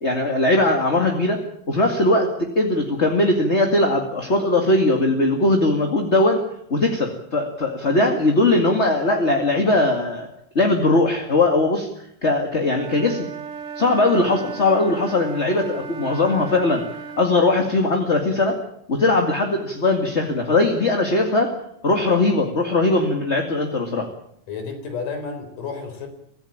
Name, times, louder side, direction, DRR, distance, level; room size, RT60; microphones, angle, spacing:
voice 1, 0.0-1.4 1.7-6.4 6.7-10.3 10.6-11.9 12.2-13.3 13.8-16.8 17.2-18.6 18.9-21.5 21.8-24.1, left 2 dB, 25° left, 3 dB, 1.9 m, -20 dB
Wind instrument woodwind instrument, 12.7-17.3, right 6 dB, 60° right, 1.7 m, -35 dB
voice 2, 24.5-26.1, left 5 dB, 70° left, 7 dB, 5.6 m, -31 dB
24.5 x 16.0 x 8.8 m, 0.74 s
omnidirectional pair, 3.9 m